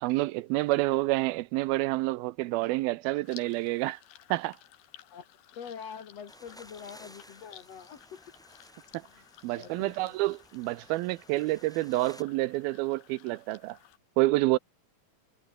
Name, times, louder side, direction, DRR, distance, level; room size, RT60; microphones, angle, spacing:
voice 1, 0.0-4.0 4.3-4.6 9.4-13.8 14.2-14.6, right 19 dB, 85° right, 2.5 m, -28 dB
sound 1, 3.2-14.0, left 12 dB, 80° left, 3.6 m, -55 dB
voice 2, 5.6-8.3 9.0-9.2 9.6-10.2, left 7 dB, 55° left, 2.1 m, -45 dB
sound 2, 6.3-12.2, equal, ahead, 4.7 m, -55 dB
omnidirectional pair, 4.4 m